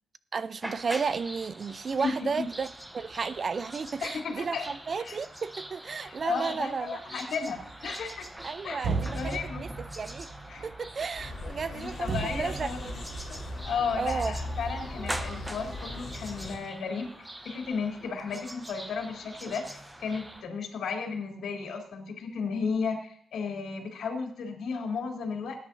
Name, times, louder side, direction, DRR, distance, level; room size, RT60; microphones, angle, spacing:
voice 1, 0.3-2.7 2.9-7.0 8.4-10.3 10.6-12.9 14.0-14.4, right 5 dB, 35° right, 0.5 m, -33 dB
sound 1, 0.6-20.4, right 1 dB, 10° right, 0.9 m, -43 dB
voice 2, 2.0-2.4 4.0-4.7 5.0-5.2 6.0-8.2 8.6-9.6 10.5-10.6 11.7-13.0 13.6-17.1 17.4-25.6, left 5 dB, 75° left, 3.3 m, -34 dB
sound 2, 7.5-8.5 8.8-13.7, right 4 dB, 85° right, 2.0 m, -36 dB
sound 3, 11.2-16.6, left 1 dB, 30° left, 5.4 m, -39 dB
19.0 x 10.0 x 2.7 m
wide cardioid pair, 145°, 0 cm